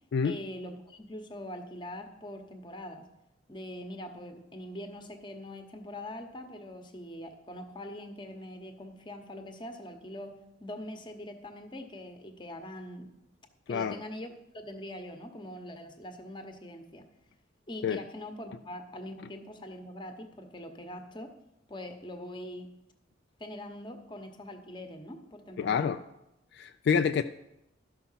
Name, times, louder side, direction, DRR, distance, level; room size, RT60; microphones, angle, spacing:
voice 1, 0.2-3.1 3.5-13.1 13.7-17.1 17.7-21.3 21.7-22.7 23.4-26.0, left 1 dB, 25° left, 6 dB, 0.9 m, -43 dB
voice 2, 25.6-26.0 26.5-27.2, left 6 dB, 60° left, 9 dB, 0.3 m, -27 dB
12.0 x 5.6 x 5.6 m, 0.88 s
head